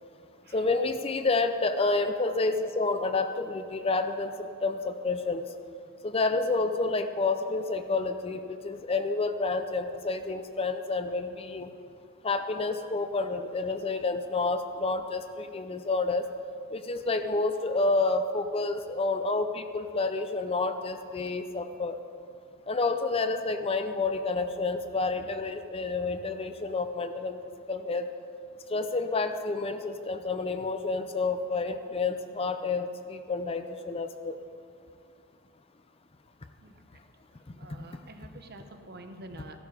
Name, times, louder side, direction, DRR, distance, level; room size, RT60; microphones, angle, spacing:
voice 1, 0.5-5.4 6.0-11.7 12.2-16.2 16.7-22.0 22.7-27.4 27.7-28.1 28.7-34.4, left 3 dB, 25° left, 8 dB, 0.5 m, -29 dB
voice 2, 36.6-37.0 37.6-39.6, right 2 dB, 50° right, 7 dB, 0.9 m, -47 dB
14.5 x 12.0 x 4.9 m, 2.3 s
head